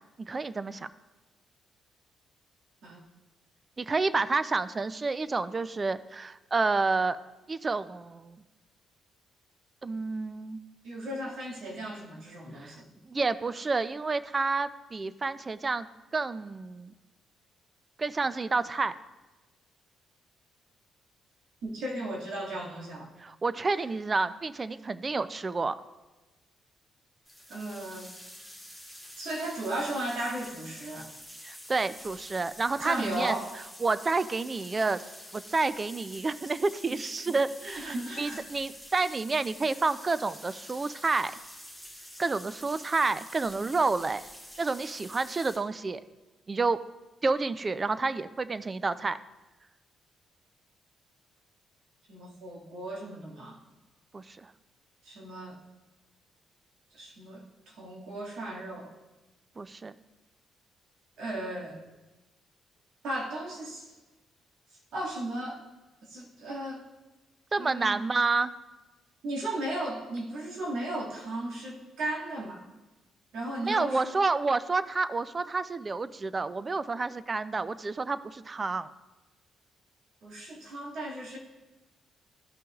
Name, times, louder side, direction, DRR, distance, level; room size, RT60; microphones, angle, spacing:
voice 1, 0.2-0.9 3.8-7.2 7.5-8.4 9.8-10.6 12.6-12.8 13.1-15.9 16.1-16.9 18.0-18.9 23.2-25.7 31.4-33.4 33.8-35.0 35.3-41.3 42.2-44.2 44.6-46.0 46.5-46.8 47.2-49.2 54.1-54.4 59.6-59.9 67.5-68.5 73.6-78.9, right 3 dB, 30° right, 14 dB, 0.4 m, -29 dB
voice 2, 10.8-12.8 21.6-23.1 27.5-28.1 29.2-31.1 32.8-33.5 37.6-38.4 52.1-53.6 55.0-55.6 56.9-58.9 61.2-61.8 63.0-64.0 64.9-65.6 66.1-66.8 67.6-68.0 69.2-72.6 73.3-74.2 80.2-81.4, right 1 dB, 75° right, -3 dB, 2.0 m, -36 dB
sound 1, 27.3-45.6, equal, 15° right, 1.6 m, -47 dB
13.5 x 5.8 x 2.4 m, 1.1 s
cardioid pair, 90°, 0 cm